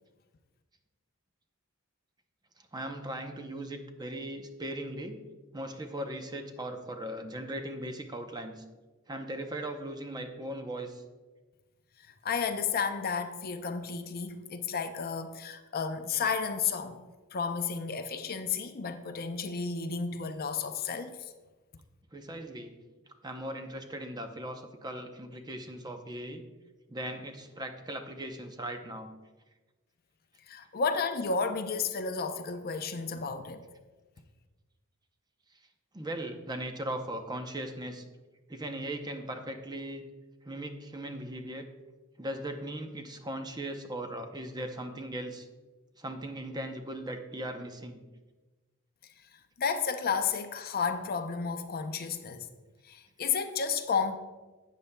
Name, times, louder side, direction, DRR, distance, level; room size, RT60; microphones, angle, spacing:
voice 1, 2.7-5.2 5.5-8.6 9.1-11.0 22.1-22.7 23.2-26.4 26.9-29.1 35.9-38.0 38.5-40.0 40.4-41.7 42.2-45.5 46.0-48.0, right 1 dB, 20° right, 0.6 m, -38 dB
voice 2, 12.0-17.0 17.3-21.3 30.5-33.6 49.6-52.5 52.8-54.1, left 5 dB, 45° left, 0.5 m, -32 dB
12.0 x 8.4 x 2.2 m
head